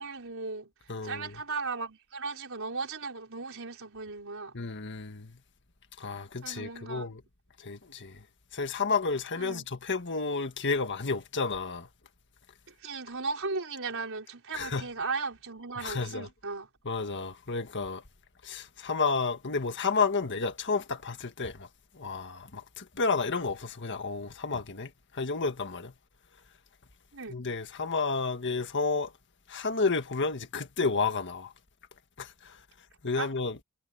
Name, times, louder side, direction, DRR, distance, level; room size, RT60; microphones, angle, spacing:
voice 1, 0.0-0.7 1.0-4.5 6.4-7.1 9.4-9.7 12.8-16.7 27.1-27.4 33.2-33.3, right 4 dB, 65° right, 4.9 m, -36 dB
voice 2, 0.9-1.4 4.5-5.4 6.0-7.2 7.6-8.2 8.5-11.9 14.5-14.9 15.8-16.3 16.8-18.0 18.4-21.7 21.9-25.9 27.3-29.1 29.5-31.5 32.2-32.6 33.0-33.6, left 4 dB, 55° left, 1.7 m, -31 dB
head